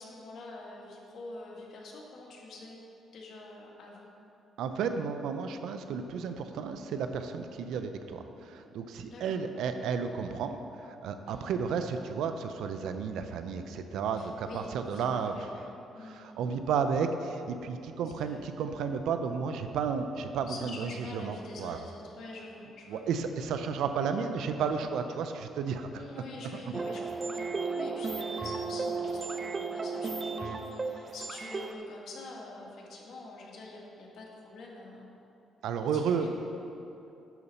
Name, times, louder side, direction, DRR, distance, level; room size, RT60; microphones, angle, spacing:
voice 1, 0.0-2.8 3.1-4.1 9.1-9.4 11.2-11.5 14.1-15.6 15.9-16.4 18.0-18.4 20.5-23.1 25.9-35.1 35.8-36.3, left 2 dB, 65° left, -2 dB, 1.8 m, -46 dB
voice 2, 4.6-15.6 16.0-21.8 22.9-26.0 35.6-36.3, right 6 dB, 80° right, 8 dB, 0.6 m, -32 dB
sound 1, 26.7-31.7, right 4 dB, 30° right, 0.5 m, -34 dB
11.0 x 4.1 x 6.8 m, 2.8 s
cardioid pair, 90°, 0 cm